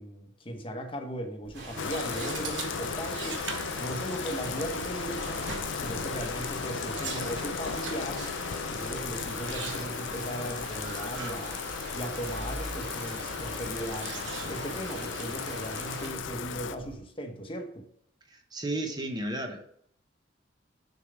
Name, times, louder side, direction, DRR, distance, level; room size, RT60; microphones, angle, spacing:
voice 1, 0.0-3.4 3.8-5.4 5.8-8.3 8.7-11.6 11.9-14.2 14.5-17.9, right 1 dB, 30° left, 4 dB, 1.0 m, -37 dB
sound 1, 1.4-16.9, right 3 dB, 85° right, 1.2 m, -43 dB
sound 2, 1.5-16.1, right 2 dB, 65° right, 2.1 m, -42 dB
Bathtub (filling or washing), 1.8-16.8, left 6 dB, 80° left, 0.5 m, -36 dB
voice 2, 18.3-19.7, right 1 dB, 20° right, 4 dB, 0.8 m, -33 dB
6.7 x 4.7 x 5.0 m, 0.66 s
head